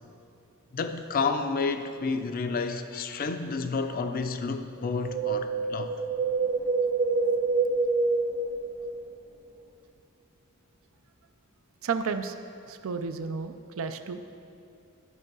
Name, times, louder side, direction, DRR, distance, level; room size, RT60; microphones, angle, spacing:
voice 1, 0.7-5.9, left 4 dB, 45° left, 8 dB, 0.5 m, -30 dB
Wind, 4.8-9.2 9.4-9.5, right 4 dB, 30° right, 1.0 m, -27 dB
voice 2, 11.8-12.3 12.7-14.2, right 5 dB, 70° right, 9 dB, 0.5 m, -32 dB
11.0 x 5.4 x 6.1 m, 2.6 s
head